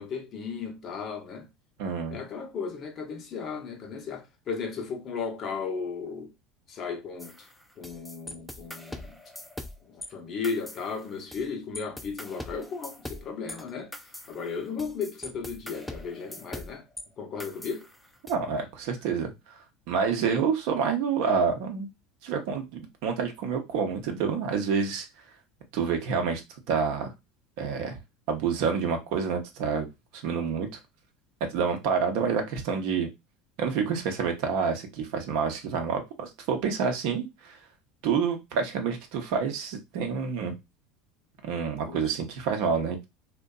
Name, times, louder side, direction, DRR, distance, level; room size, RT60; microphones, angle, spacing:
voice 1, 0.0-1.5 2.1-6.3 6.7-7.5 7.8-9.1 9.8-13.9 14.3-16.9 17.2-17.9 41.8-42.1, left 5 dB, 45° left, 0.6 m, -35 dB
voice 2, 1.8-2.2 18.3-19.3 19.9-21.9 22.2-25.1 25.7-26.4 26.7-27.1 27.6-28.0 28.3-29.9 30.1-30.7 31.5-33.1 33.6-37.6 38.0-40.5 41.4-43.0, right 6 dB, 65° right, 0.6 m, -28 dB
sound 1, 7.2-10.1 10.4-11.5 11.7-17.0 17.4-18.3, left 1 dB, 5° left, 0.4 m, -42 dB
2.6 x 2.1 x 2.3 m
hypercardioid pair, 75°, 0 cm